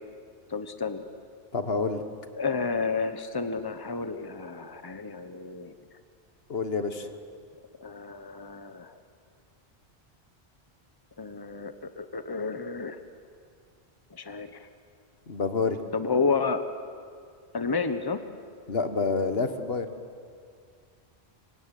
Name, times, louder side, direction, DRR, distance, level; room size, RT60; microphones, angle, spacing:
voice 1, 0.5-1.1 2.3-5.7 7.8-9.0 11.2-13.0 14.1-14.7 15.9-16.6 17.5-18.2, left 4 dB, 20° left, 9 dB, 1.2 m, -31 dB
voice 2, 1.5-2.0 6.5-7.1 15.3-15.8 18.7-19.9, left 4 dB, 65° left, 9 dB, 1.6 m, -28 dB
25.5 x 24.5 x 9.4 m, 2.2 s
omnidirectional pair, 1.1 m